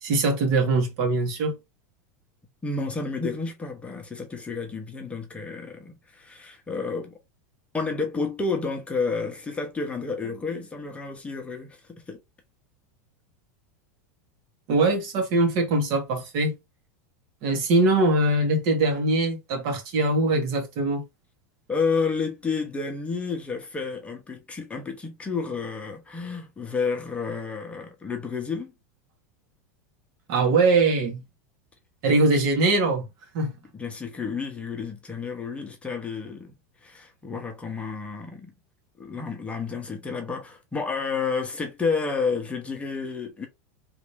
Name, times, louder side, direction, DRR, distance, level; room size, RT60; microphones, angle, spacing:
voice 1, 0.0-1.6 14.7-16.5 17.4-21.0 30.3-31.2 32.0-33.1 33.3-33.5, right 2 dB, 55° right, 1.6 m, -22 dB
voice 2, 2.6-7.1 7.7-12.2 21.7-28.7 33.7-36.5 36.8-38.5 39.0-43.5, left 4 dB, 15° left, 0.9 m, -30 dB
3.1 x 2.8 x 3.4 m
supercardioid pair, 125°, 9 cm